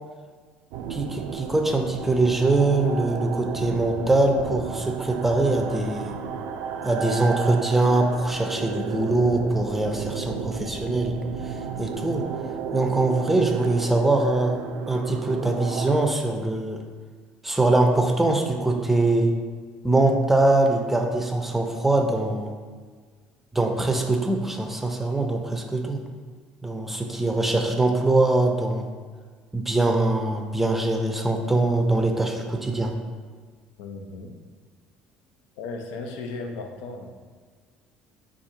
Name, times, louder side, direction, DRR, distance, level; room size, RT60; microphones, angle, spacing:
sound 1, 0.7-16.1, right 6 dB, 80° right, 0.3 m, -33 dB
voice 1, 0.9-6.2 6.8-11.1 11.4-11.5 11.8-12.2 12.7-14.6 14.9-16.8 17.4-19.3 19.8-22.5 23.5-26.0 26.6-28.9 29.5-32.9, right 2 dB, 10° right, 3 dB, 0.5 m, -23 dB
voice 2, 33.8-34.4 35.6-37.2, left 3 dB, 85° left, 4 dB, 0.5 m, -36 dB
4.2 x 2.4 x 4.8 m, 1.5 s
cardioid pair, 105°, 3 cm